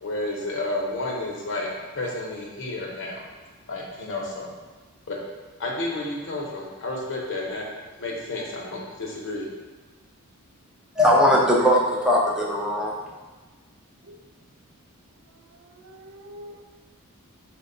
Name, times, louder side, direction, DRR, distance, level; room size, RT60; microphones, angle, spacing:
voice 1, 0.0-1.7 1.9-3.2 3.7-4.5 5.1-5.2 5.6-7.6 8.0-9.5, left 2 dB, 60° left, -2 dB, 0.8 m, -31 dB
voice 2, 11.0-13.0, equal, 5° right, -3 dB, 0.5 m, -19 dB
voice 3, 15.3-16.6, equal, 60° right, 3 dB, 0.4 m, -46 dB
4.6 x 2.2 x 3.8 m, 1.3 s
head